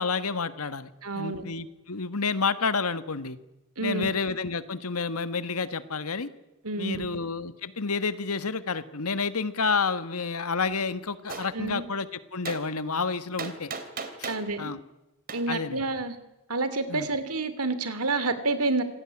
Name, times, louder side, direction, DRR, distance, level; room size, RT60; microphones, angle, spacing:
voice 1, 0.0-0.9 1.1-3.4 3.8-6.3 6.8-13.7 14.2-14.8 15.5-15.8 16.9-17.1, left 4 dB, 85° left, 12 dB, 1.5 m, -30 dB
voice 2, 1.0-1.4 3.8-4.1 6.6-7.1 11.5-11.8 14.3-14.7 15.3-16.1 16.5-18.8, right 3 dB, 90° right, 12 dB, 2.8 m, -29 dB
Gunshot gunfire, 11.3-11.5 12.4-12.6 13.4-14.5 15.3-15.4, right 5 dB, 45° right, 2.9 m, -35 dB
26.5 x 17.5 x 9.9 m, 1.0 s
head